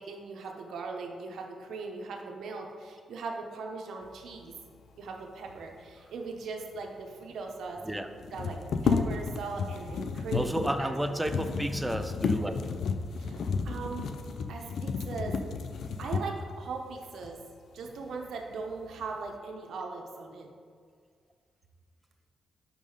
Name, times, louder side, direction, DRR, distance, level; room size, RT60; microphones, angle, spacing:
voice 1, 0.0-4.5 5.0-8.0 8.3-11.2 13.1-14.1 14.5-15.4 16.0-17.4 17.7-20.5, right 4 dB, 80° right, 2 dB, 0.9 m, -39 dB
sound 1, 6.7-6.8 7.0-7.1 8.2-16.5 17.2-17.3 17.8-18.4 18.8-19.3, left 5 dB, 75° left, 0.4 m, -32 dB
voice 2, 10.3-12.6, right 1 dB, 10° right, 7 dB, 0.6 m, -31 dB
5.3 x 5.3 x 4.9 m, 2.1 s
cardioid pair, 60°, 0 cm